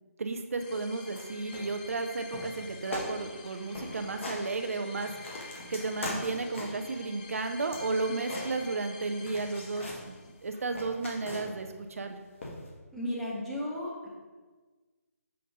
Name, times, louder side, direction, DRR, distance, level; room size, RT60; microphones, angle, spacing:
voice 1, 0.2-5.4 5.7-12.2, right 3 dB, 60° right, 6 dB, 0.5 m, -33 dB
sound 1, 0.6-10.5, left 4 dB, 30° left, 0.6 m, -48 dB
sound 2, 1.1-1.3 1.5-2.1 2.3-2.6 2.9-3.1 3.4-3.5 3.7-4.4 4.8-6.9 7.3-9.0 9.3-10.0 10.4-11.7 12.4-12.7, left 1 dB, 50° left, 1.4 m, -40 dB
voice 2, 12.9-14.1, left 1 dB, ahead, -8 dB, 1.0 m, -35 dB
6.4 x 5.2 x 2.8 m, 1.3 s
figure-of-eight pair, 150°, 8 cm